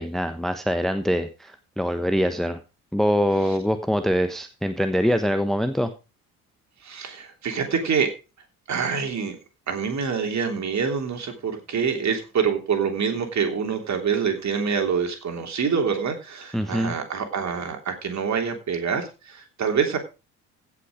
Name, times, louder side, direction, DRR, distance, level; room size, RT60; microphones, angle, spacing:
voice 1, 0.0-2.6 2.9-5.9 16.5-16.9, equal, ahead, 9 dB, 1.1 m, -24 dB
voice 2, 6.8-8.1 8.7-9.4 9.7-20.0, right 6 dB, 35° right, 4 dB, 3.2 m, -26 dB
16.0 x 6.0 x 5.0 m, 0.31 s
figure-of-eight pair, 55°, 45 cm